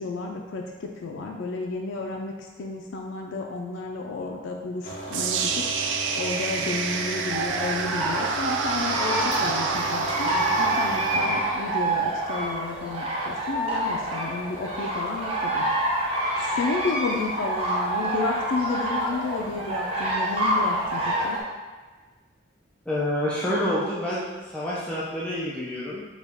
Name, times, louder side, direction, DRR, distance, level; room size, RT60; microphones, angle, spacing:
voice 1, 0.0-15.7 16.4-21.4, left 3 dB, 85° left, 0 dB, 0.4 m, -32 dB
sound 1, 4.8-11.4, equal, 60° left, 0.7 m, -36 dB
sound 2, 5.1-13.2, right 6 dB, 75° right, 0.3 m, -30 dB
sound 3, 7.3-21.4, right 1 dB, 30° right, 0.7 m, -27 dB
voice 2, 22.9-24.3 24.5-26.0, left 1 dB, 5° left, -8 dB, 0.5 m, -27 dB
4.8 x 2.3 x 3.4 m, 1.3 s
head